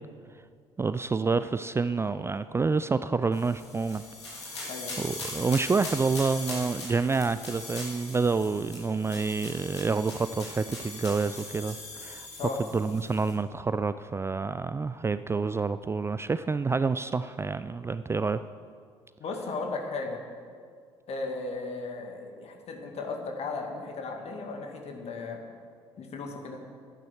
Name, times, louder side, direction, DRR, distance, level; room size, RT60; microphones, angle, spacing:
voice 1, 0.8-4.0 4.4-4.7 5.0-12.3 12.7-18.4, right 4 dB, 20° right, 13 dB, 0.4 m, -28 dB
sound 1, 3.3-13.3, left 2 dB, 80° left, 2.7 m, -40 dB
voice 2, 19.2-20.2 21.1-25.4 26.0-26.6, left 3 dB, 45° left, 3 dB, 2.2 m, -35 dB
13.5 x 10.5 x 6.3 m, 2.1 s
figure-of-eight pair, 50°, 14 cm